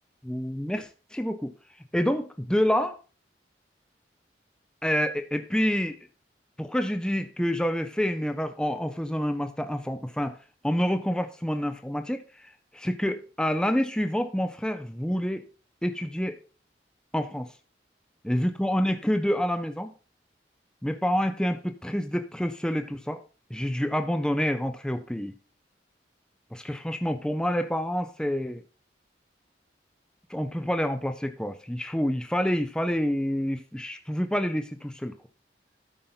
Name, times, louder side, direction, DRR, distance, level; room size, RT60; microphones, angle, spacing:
voice 1, 0.2-1.5 1.9-3.0 4.8-6.0 6.6-10.4 10.6-15.4 15.8-16.4 17.1-17.5 18.2-19.9 20.8-23.2 23.5-25.3 26.5-28.6 30.3-35.1, equal, 5° left, 8 dB, 0.5 m, -28 dB
12.5 x 5.5 x 4.0 m, 0.35 s
head